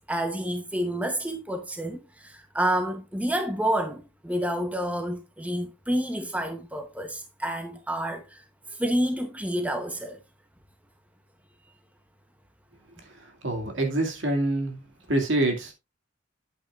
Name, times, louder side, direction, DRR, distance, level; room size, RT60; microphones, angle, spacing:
voice 1, 0.1-8.4 8.7-10.2, right 1 dB, 5° right, 0.8 m, -29 dB
voice 2, 13.4-14.8 15.1-15.7, right 1 dB, 70° right, 2.2 m, -25 dB
9.0 x 8.6 x 2.4 m
head